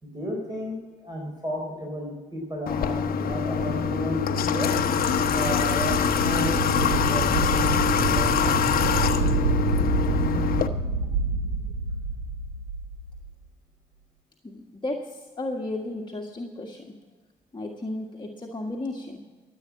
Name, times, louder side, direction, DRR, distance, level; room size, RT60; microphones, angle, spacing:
voice 1, 0.0-4.7 5.3-6.0 6.2-8.5, equal, 25° right, 0 dB, 4.5 m, -33 dB
Water / Water tap faucet, 2.7-10.7, left 7 dB, 55° left, 1.0 m, -24 dB
sound 1, 3.5-13.3, right 3 dB, 90° right, 2.2 m, -28 dB
voice 2, 14.4-16.8 17.5-19.2, left 2 dB, 25° left, 0 dB, 1.6 m, -34 dB
14.0 x 8.4 x 7.3 m, 1.4 s
supercardioid pair, 60°, 18 cm